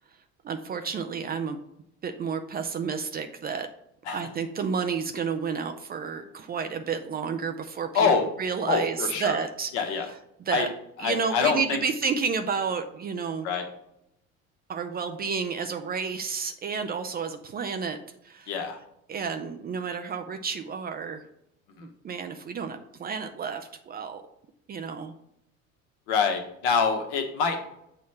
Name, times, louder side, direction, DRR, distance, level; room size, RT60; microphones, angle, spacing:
voice 1, 0.4-1.6 2.0-3.7 4.1-8.1 8.4-9.9 10.5-10.7 11.0-13.5 14.7-18.0 18.2-18.5 19.1-21.2 21.8-24.2 24.7-25.1, right 5 dB, 25° right, 7 dB, 0.5 m, -31 dB
voice 2, 7.9-8.3 8.7-9.4 9.7-10.1 10.5-10.7 11.0-11.8 13.4-13.7 18.5-18.8 21.8-21.9 26.1-27.7, left 5 dB, 55° left, 5 dB, 1.3 m, -25 dB
7.7 x 3.1 x 5.8 m, 0.79 s
figure-of-eight pair, 65°, 41 cm